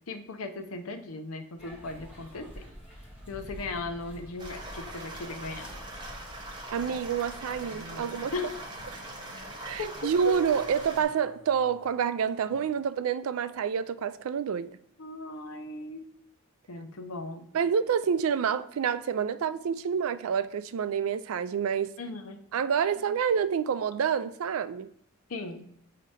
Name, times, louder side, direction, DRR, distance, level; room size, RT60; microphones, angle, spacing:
voice 1, 0.1-2.7 3.3-5.8 8.3-8.6 9.8-10.4 15.0-16.1 16.7-17.5 22.0-22.4 25.3-25.7, left 3 dB, 85° left, 0.7 m, -37 dB
sound 1, 1.6-7.8, equal, 5° right, 1.6 m, -48 dB
sound 2, 3.4-3.7 5.2-5.8 7.2-12.7, right 1 dB, 60° right, 1.2 m, -52 dB
sound 3, 4.4-11.0, right 1 dB, 20° right, 0.9 m, -42 dB
voice 2, 6.7-8.3 9.6-14.7 17.5-21.9 22.5-24.9, right 7 dB, 85° right, 0.4 m, -28 dB
7.6 x 2.8 x 4.9 m
head